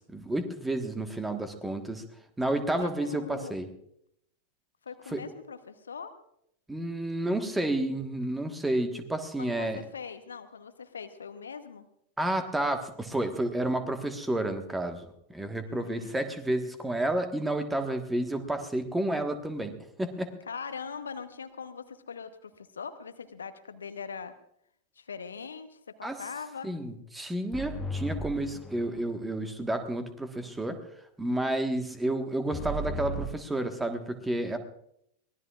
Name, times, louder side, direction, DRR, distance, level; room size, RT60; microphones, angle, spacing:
voice 1, 0.1-2.0 2.4-3.7 5.1-5.2 6.7-9.8 12.2-20.3 26.0-26.2 26.6-30.8 31.2-34.6, right 1 dB, 10° right, 7 dB, 1.4 m, -31 dB
voice 2, 2.8-3.6 4.8-6.1 9.4-11.9 15.6-16.2 20.5-24.3 25.0-26.7, left 6 dB, 70° left, 10 dB, 1.0 m, -41 dB
sound 1, 27.5-29.2 32.5-33.4, equal, 10° left, 1.6 m, -35 dB
24.0 x 18.0 x 2.4 m, 0.73 s
figure-of-eight pair, 90°, 0 cm